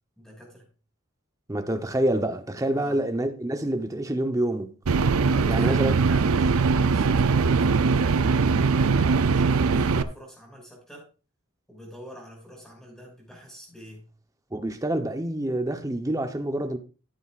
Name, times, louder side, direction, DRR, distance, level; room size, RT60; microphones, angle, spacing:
voice 1, 0.2-0.7 2.7-3.0 5.3-11.1 11.7-14.0, equal, 5° left, 5.5 m, -45 dB
voice 2, 1.5-4.7 5.5-5.9 14.5-16.8, right 1 dB, 15° right, 0.9 m, -27 dB
sound 1, 4.8-10.0, right 4 dB, 90° right, 0.5 m, -21 dB
14.0 x 9.2 x 2.5 m
head